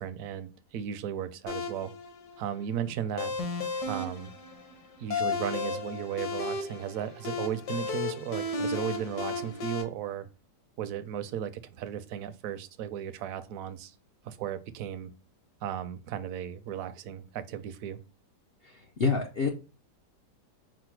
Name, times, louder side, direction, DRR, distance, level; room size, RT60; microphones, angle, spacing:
voice 1, 0.0-1.9 2.4-3.3 3.9-4.3 5.0-10.3 10.8-13.9 14.2-15.1 15.6-18.0, right 9 dB, 70° right, 0.9 m, -35 dB
sound 1, 1.5-9.8, left 4 dB, 70° left, 1.4 m, -34 dB
voice 2, 18.6-19.5, left 4 dB, 85° left, 0.5 m, -28 dB
4.9 x 2.1 x 4.5 m
omnidirectional pair, 1.8 m